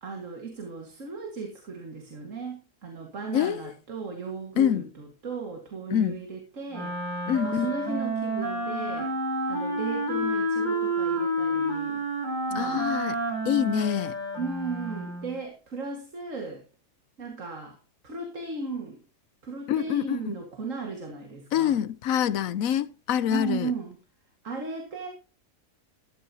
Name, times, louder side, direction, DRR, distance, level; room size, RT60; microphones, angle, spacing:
voice 1, 0.0-6.9 7.4-9.1 9.5-12.0 12.5-12.9 14.4-16.6 17.2-17.8 18.0-19.0 19.4-21.8 23.3-24.0 24.4-25.1, right 4 dB, 55° right, 2.2 m, -36 dB
voice 2, 3.3-3.7 4.6-4.8 5.9-6.2 7.3-7.7 12.5-13.1 13.4-14.1 19.7-20.4 21.5-23.7, left 10 dB, 65° left, 1.1 m, -25 dB
Wind instrument woodwind instrument, 6.7-15.4, right 1 dB, 30° right, 4.0 m, -29 dB
13.5 x 12.5 x 2.8 m
omnidirectional pair, 1.7 m